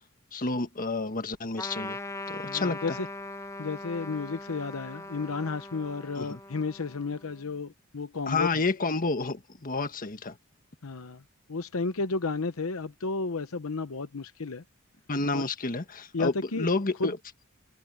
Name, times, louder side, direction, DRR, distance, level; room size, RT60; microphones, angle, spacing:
voice 1, 0.3-2.0 2.3-3.0 6.2-6.4 8.3-10.4 15.1-17.2, left 3 dB, 40° left, 1.6 m, -30 dB
Trumpet, 1.6-7.4, left 2 dB, 15° left, 1.1 m, -40 dB
voice 2, 2.4-3.1 3.6-8.5 10.8-11.2 11.5-14.6 15.3-15.4 16.1-16.7 17.0-17.1, left 4 dB, 80° left, 0.9 m, -32 dB
head